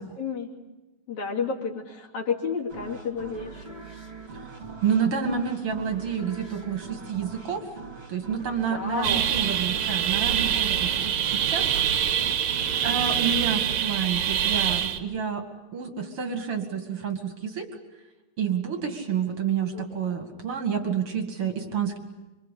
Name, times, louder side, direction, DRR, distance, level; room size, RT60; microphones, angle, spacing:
voice 1, 0.2-0.5 1.1-3.7 8.7-9.2 19.7-19.8, left 5 dB, 45° left, -1 dB, 3.4 m, -31 dB
sound 1, 2.7-14.2, right 3 dB, 20° right, 2.1 m, -43 dB
voice 2, 4.8-7.7 8.1-11.8 12.8-15.4 15.7-17.7 18.4-22.0, right 7 dB, 40° right, 5 dB, 2.2 m, -29 dB
sound 2, 9.0-15.0, right 9 dB, 65° right, 2.5 m, -25 dB
26.5 x 25.5 x 8.4 m, 1.0 s
omnidirectional pair, 5.3 m